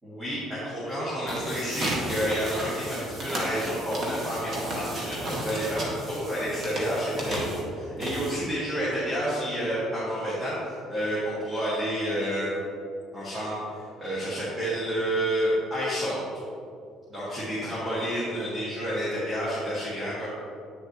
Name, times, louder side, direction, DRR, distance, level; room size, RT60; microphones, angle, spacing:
voice 1, 0.0-12.6 13.1-16.2 17.1-20.3, equal, 10° right, -10 dB, 1.9 m, -29 dB
sound 1, 1.1-8.6, right 1 dB, 35° right, 1.6 m, -34 dB
9.6 x 6.6 x 3.0 m, 2.5 s
cardioid pair, 150°, 0 cm